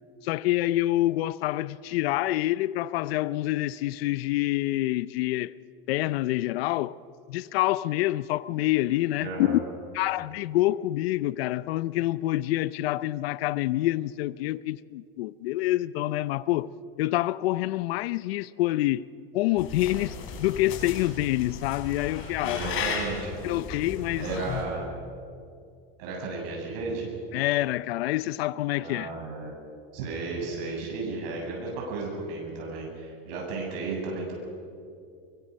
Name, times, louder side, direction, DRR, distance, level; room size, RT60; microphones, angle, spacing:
voice 1, 0.2-5.5 5.9-7.0 7.3-9.6 9.9-16.7 17.0-19.1 19.3-22.6 23.4-24.3 27.3-29.1, left 16 dB, 80° left, 0.7 m, -27 dB
voice 2, 9.2-9.6 22.4-23.3 24.1-24.9 26.0-27.1 28.7-29.5 29.9-34.3, right 3 dB, 65° right, 7.6 m, -34 dB
sound 1, 19.6-24.6, left 6 dB, 45° left, 5.1 m, -35 dB
23.5 x 23.5 x 6.4 m
supercardioid pair, 140°, 30 cm